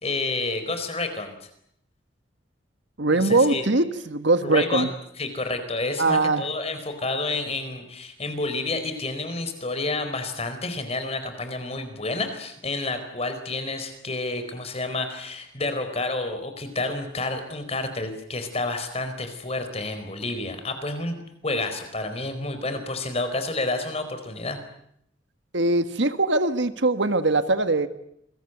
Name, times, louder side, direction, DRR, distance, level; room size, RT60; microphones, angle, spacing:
voice 1, 0.0-1.5 3.1-3.7 4.4-4.8 5.2-24.6, left 2 dB, 30° left, 9 dB, 4.5 m, -29 dB
voice 2, 3.0-4.9 6.0-6.4 25.5-27.9, right 2 dB, 65° right, 10 dB, 1.7 m, -21 dB
28.5 x 22.0 x 8.1 m, 0.73 s
head